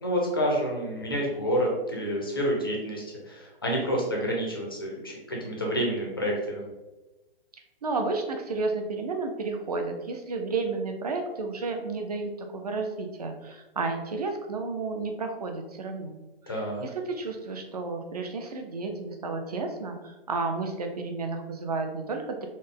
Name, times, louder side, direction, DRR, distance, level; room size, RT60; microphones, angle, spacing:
voice 1, 0.0-6.6 16.5-16.8, equal, 25° left, -1 dB, 0.4 m, -28 dB
voice 2, 7.8-16.2 16.4-22.5, right 3 dB, 40° right, 4 dB, 0.4 m, -32 dB
3.7 x 2.0 x 3.6 m, 1.1 s
hypercardioid pair, 170°, 31 cm